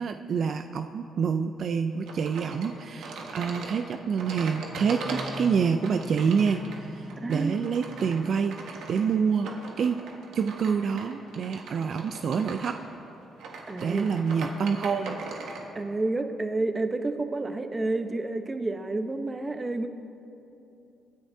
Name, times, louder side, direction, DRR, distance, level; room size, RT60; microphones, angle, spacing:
voice 1, 0.0-9.5 9.8-10.0 10.3-12.8 13.8-15.2, right 6 dB, 60° right, 7 dB, 0.4 m, -27 dB
sound 1, 2.1-15.7, right 3 dB, 80° right, 1.5 m, -40 dB
sound 2, 4.7-9.2, left 2 dB, 10° left, 0.8 m, -44 dB
voice 2, 7.2-7.5 13.7-14.1 15.7-19.9, right 2 dB, 25° right, 7 dB, 0.9 m, -30 dB
24.5 x 10.0 x 2.8 m, 2.8 s
cardioid pair, 90°, 0 cm